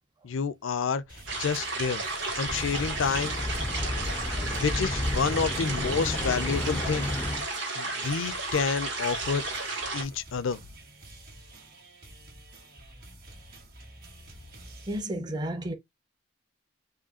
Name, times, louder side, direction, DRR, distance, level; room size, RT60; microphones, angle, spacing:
voice 1, 0.2-1.0 1.4-2.0 2.4-3.3 4.6-7.1 7.8-9.4 9.9-10.6, left 5 dB, 75° left, 0.5 m, -29 dB
sound 1, 1.1-15.0, right 1 dB, 50° right, 1.8 m, -50 dB
sound 2, 1.3-10.0, right 3 dB, 70° right, 1.9 m, -33 dB
sound 3, 2.4-7.5, left 2 dB, 10° left, 0.3 m, -32 dB
voice 2, 14.9-15.7, right 1 dB, 20° right, 0.7 m, -32 dB
4.9 x 2.6 x 2.8 m
head